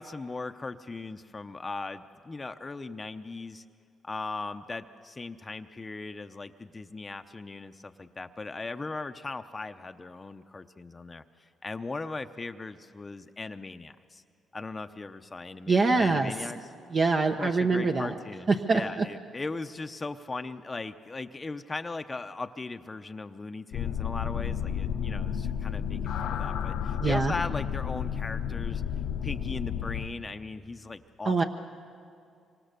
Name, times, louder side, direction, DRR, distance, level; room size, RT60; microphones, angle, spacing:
voice 1, 0.0-3.6 4.0-14.2 14.5-16.6 17.4-28.8 29.2-31.4, left 3 dB, 25° left, 8 dB, 0.8 m, -38 dB
voice 2, 15.7-16.3 16.9-18.1 18.5-19.1 27.0-27.3 31.2-31.4, right 3 dB, 40° right, 4 dB, 1.0 m, -24 dB
sound 1, 23.7-30.1, left 8 dB, 80° left, 1.0 m, -31 dB
25.5 x 25.0 x 6.8 m, 2.3 s
cardioid pair, 90°, 0 cm